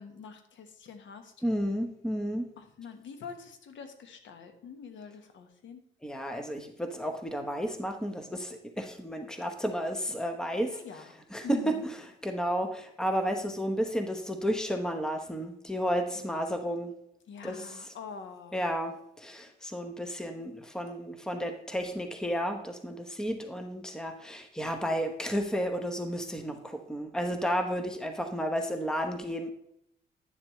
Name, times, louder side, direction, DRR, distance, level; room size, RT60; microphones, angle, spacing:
voice 1, 0.0-1.3 2.6-5.8 10.7-11.1 11.4-11.9 16.1-16.3 17.3-18.6, left 6 dB, 70° left, 7 dB, 1.3 m, -45 dB
voice 2, 1.4-2.5 6.0-10.8 11.3-12.0 12.2-16.9 17.4-17.7 18.5-29.5, equal, 5° left, 6 dB, 1.0 m, -32 dB
10.5 x 7.1 x 3.2 m, 0.76 s
cardioid pair, 90°, 20 cm